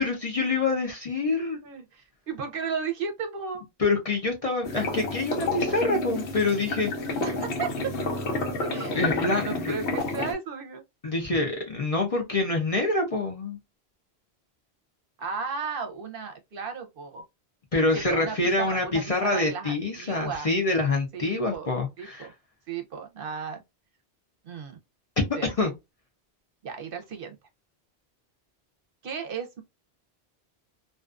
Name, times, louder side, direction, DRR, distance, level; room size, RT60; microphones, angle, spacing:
voice 1, 0.0-1.6 3.8-7.2 8.9-9.7 11.0-13.6 17.7-22.3 25.4-25.7, left 3 dB, 40° left, 0.6 m, -26 dB
voice 2, 1.6-3.6 7.2-8.0 8.6-9.0 9.4-10.8 15.2-17.2 17.9-20.5 21.1-21.7 22.0-22.3 22.7-23.6 24.4-24.8 25.4-25.5 26.6-27.4 29.0-29.6, right 5 dB, 65° right, 0.7 m, -34 dB
sound 1, 4.6-10.3, left 2 dB, 85° left, 1.0 m, -30 dB
2.5 x 2.3 x 2.3 m
omnidirectional pair, 1.1 m